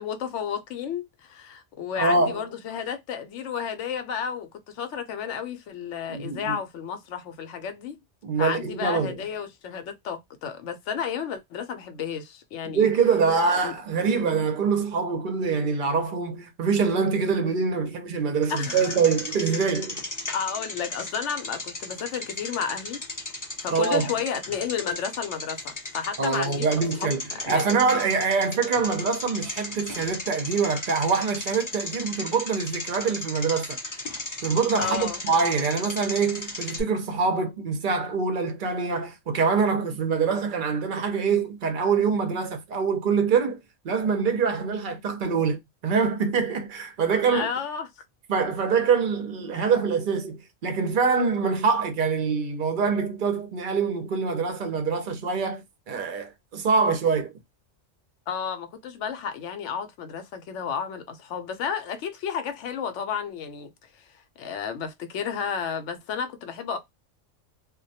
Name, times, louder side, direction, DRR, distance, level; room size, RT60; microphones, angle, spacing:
voice 1, 0.0-8.0 8.4-12.9 13.5-13.7 18.5-19.0 20.3-23.0 23.6-26.7 27.0-27.7 34.8-35.2 47.3-47.9 58.3-66.8, left 7 dB, 75° left, 0.9 m, -32 dB
voice 2, 2.0-2.4 6.1-6.6 8.2-9.2 12.6-20.0 23.7-24.1 26.2-27.2 27.5-33.8 34.4-43.6 43.8-47.5 48.3-57.3, right 5 dB, 55° right, 0.6 m, -24 dB
Bicycle, 18.4-36.8, left 2 dB, 25° left, 0.4 m, -36 dB
2.2 x 2.1 x 2.7 m
omnidirectional pair, 1.3 m